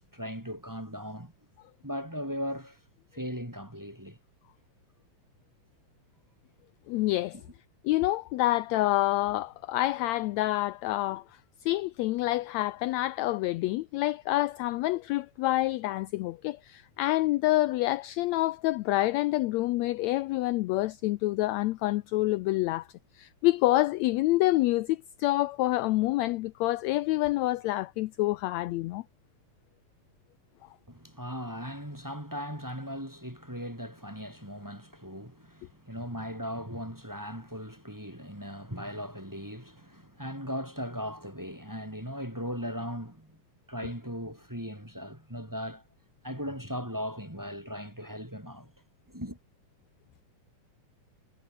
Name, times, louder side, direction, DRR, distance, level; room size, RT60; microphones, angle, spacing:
voice 1, 0.1-1.3 1.8-2.8 3.1-4.2 7.3-7.4 30.9-43.4 43.7-45.8 46.2-48.7 49.1-49.4, equal, 5° right, 3.3 m, -38 dB
voice 2, 6.9-7.4 7.8-11.2 11.6-22.9 23.2-29.0, left 17 dB, 80° left, 1.6 m, -27 dB
omnidirectional pair, 3.7 m